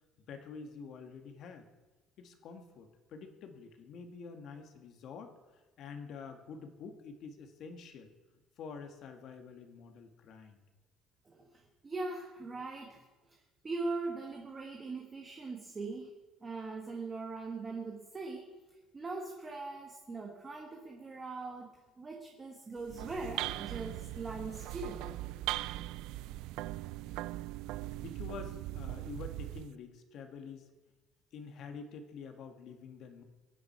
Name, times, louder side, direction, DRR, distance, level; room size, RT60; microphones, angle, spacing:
voice 1, 0.2-1.7 2.2-5.3 5.8-8.1 8.6-10.6 27.9-30.7 31.3-33.2, left 5 dB, 50° left, 6 dB, 1.9 m, -47 dB
voice 2, 11.4-13.0 13.6-16.1 16.4-18.5 18.9-21.7 22.0-25.1 25.8-25.9, right 3 dB, 20° right, 0 dB, 1.6 m, -41 dB
sound 1, 22.8-29.8, right 16 dB, 75° right, 0.4 m, -40 dB
23.5 x 9.6 x 4.6 m, 1.2 s
cardioid pair, 170°, 0 cm